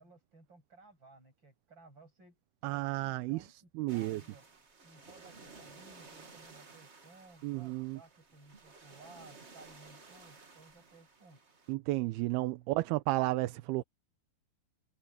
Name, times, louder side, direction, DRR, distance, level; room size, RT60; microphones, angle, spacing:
voice 1, 0.0-4.5 4.8-11.4, right 3 dB, 25° right, 8.1 m, -58 dB
voice 2, 2.6-3.5 3.8-4.2 7.4-8.0 11.7-13.8, right 19 dB, 80° right, 2.6 m, -32 dB
sound 1, 3.9-11.7, right 4 dB, 55° right, 0.7 m, -55 dB
omnidirectional pair, 4.6 m